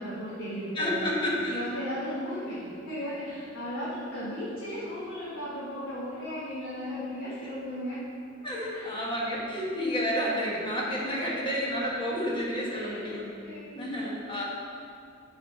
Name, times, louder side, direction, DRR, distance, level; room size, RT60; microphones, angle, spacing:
voice 1, 0.0-1.1 1.5-8.0 8.7-9.0 11.3-11.4 12.7-13.0 13.4-14.1, equal, 65° left, -10 dB, 1.7 m, -36 dB
voice 2, 0.7-1.6 8.4-13.2 13.8-14.4, equal, 25° left, -4 dB, 1.4 m, -30 dB
9.5 x 4.1 x 4.4 m, 2.5 s
head